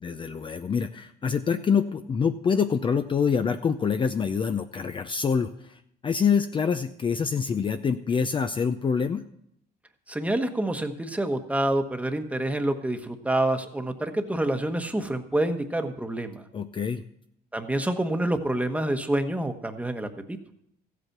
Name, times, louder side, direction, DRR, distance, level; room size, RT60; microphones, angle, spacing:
voice 1, 0.0-9.2 16.5-17.0, left 6 dB, 30° left, 9 dB, 0.6 m, -26 dB
voice 2, 10.1-16.4 17.5-20.4, right 1 dB, 10° right, 7 dB, 1.2 m, -27 dB
14.5 x 8.3 x 5.9 m, 0.74 s
cardioid pair, 110°, 17 cm